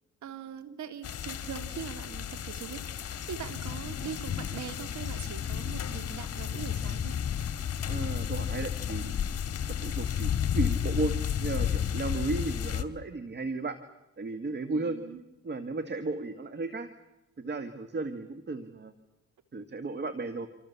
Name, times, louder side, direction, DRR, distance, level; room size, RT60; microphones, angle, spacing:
voice 1, 0.2-3.0 3.3-7.2 14.7-15.2, right 8 dB, 70° right, 10 dB, 2.7 m, -42 dB
sound 1, 1.0-12.8, left 9 dB, 50° left, 2.1 m, -32 dB
voice 2, 7.9-9.1 9.8-13.8 14.2-15.0 15.4-16.9 17.4-18.9 19.5-20.5, right 3 dB, 35° right, 10 dB, 2.0 m, -34 dB
27.0 x 25.5 x 7.2 m, 0.94 s
cardioid pair, 90°, 30 cm